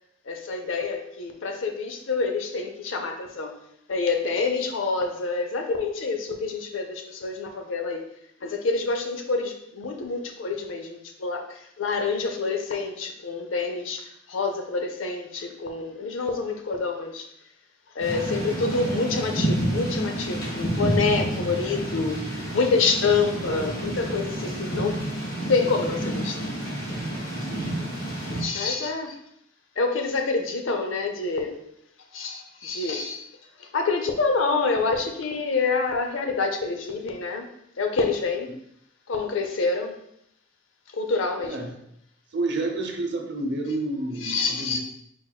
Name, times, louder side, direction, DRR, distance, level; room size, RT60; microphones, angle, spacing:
voice 1, 0.3-3.5 3.9-8.0 8.4-14.0 14.3-17.3 17.9-25.0 25.5-26.5 28.4-29.2 29.8-31.6 32.1-33.2 33.6-37.5 37.8-38.5 39.1-39.9 40.9-41.7 44.2-44.8, left 4 dB, 80° left, 5 dB, 0.6 m, -27 dB
Thunder / Rain, 18.0-28.4, right 1 dB, 60° left, 1.7 m, -29 dB
voice 2, 41.4-41.8 42.3-44.8, right 2 dB, 60° right, 3 dB, 0.7 m, -30 dB
4.6 x 4.6 x 2.3 m, 0.75 s
head